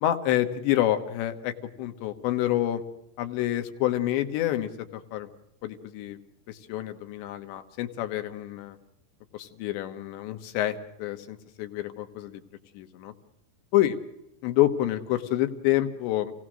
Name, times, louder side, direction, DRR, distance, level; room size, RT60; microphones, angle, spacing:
voice 1, 0.0-2.8 3.2-5.3 5.6-6.2 6.5-8.8 9.3-12.4 12.8-13.1 13.7-14.0 14.4-16.3, left 13 dB, 90° left, 8 dB, 3.5 m, -28 dB
28.5 x 17.5 x 6.2 m, 0.84 s
omnidirectional pair, 4.9 m